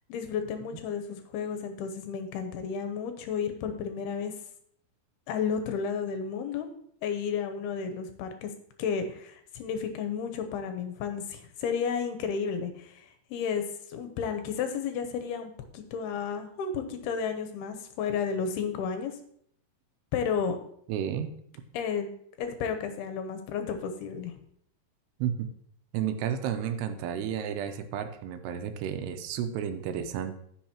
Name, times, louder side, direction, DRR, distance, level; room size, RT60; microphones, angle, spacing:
voice 1, 0.1-4.3 5.3-6.7 7.0-8.5 8.8-19.1 20.1-20.6 21.7-22.1 22.4-24.3, left 6 dB, 80° left, 7 dB, 2.6 m, -32 dB
voice 2, 20.9-21.3 25.2-25.5 25.9-30.3, right 9 dB, 80° right, 8 dB, 2.8 m, -32 dB
15.0 x 6.4 x 2.9 m, 0.67 s
omnidirectional pair, 4.8 m